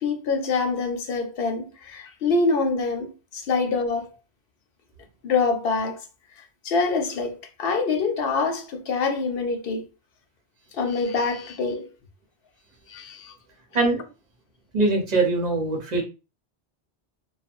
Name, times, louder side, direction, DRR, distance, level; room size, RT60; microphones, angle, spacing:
voice 1, 0.0-4.1 5.2-6.0 6.6-9.9 10.7-11.9 12.9-13.3, left 4 dB, 65° left, 0.8 m, -25 dB
voice 2, 13.7-14.1 14.7-16.0, right 3 dB, 45° right, 0.8 m, -22 dB
2.7 x 2.4 x 2.5 m
omnidirectional pair, 1.1 m